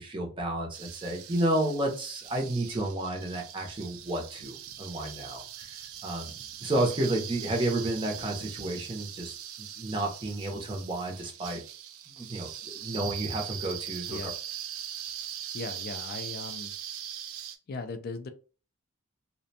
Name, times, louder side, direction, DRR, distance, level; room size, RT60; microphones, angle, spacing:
voice 1, 0.0-11.6 12.1-14.3, right 1 dB, 25° right, 0.6 m, -31 dB
sound 1, 0.7-17.6, right 10 dB, 70° right, 0.4 m, -41 dB
voice 2, 15.5-16.7 17.7-18.3, left 3 dB, 45° left, 0.3 m, -38 dB
2.5 x 2.1 x 2.7 m
head